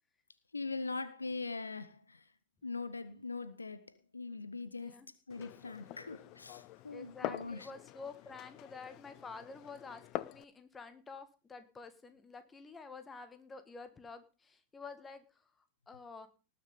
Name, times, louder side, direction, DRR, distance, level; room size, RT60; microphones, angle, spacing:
voice 1, 0.5-2.2 2.6-5.0 5.3-7.7, left 3 dB, 80° left, 0.8 m, -41 dB
voice 2, 4.8-5.1 6.9-15.5 15.9-16.3, left 4 dB, 15° left, 1.7 m, -49 dB
Glass, 5.3-10.4, left 16 dB, 40° left, 0.6 m, -45 dB
19.0 x 6.6 x 5.3 m
figure-of-eight pair, 90°, 0 cm